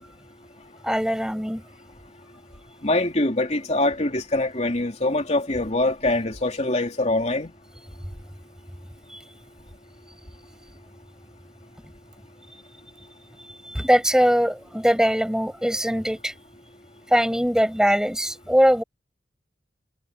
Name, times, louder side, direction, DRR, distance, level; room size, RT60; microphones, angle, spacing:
voice 1, 0.8-1.6 9.1-9.2 13.6-16.3 17.1-18.8, equal, 5° right, 6.7 m, -21 dB
voice 2, 2.8-7.5, left 2 dB, 35° left, 3.3 m, -24 dB
head